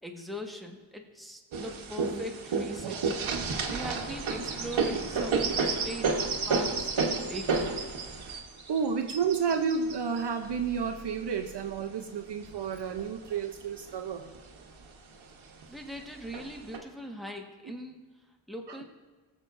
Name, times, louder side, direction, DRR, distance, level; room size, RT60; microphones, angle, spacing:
voice 1, 0.0-3.0 3.7-6.1 6.5-7.7 15.7-18.0 18.5-18.8, equal, ahead, 1 dB, 1.4 m, -41 dB
sound 1, 1.5-11.8 12.4-13.4 13.8-13.9 14.2-14.9 15.6-15.7 16.3-16.8, right 4 dB, 75° right, 1.2 m, -31 dB
voice 2, 8.7-14.3 17.6-17.7 18.7-18.8, right 6 dB, 55° right, 5 dB, 0.7 m, -31 dB
18.0 x 7.4 x 2.6 m, 1.3 s
cardioid pair, 45°, 48 cm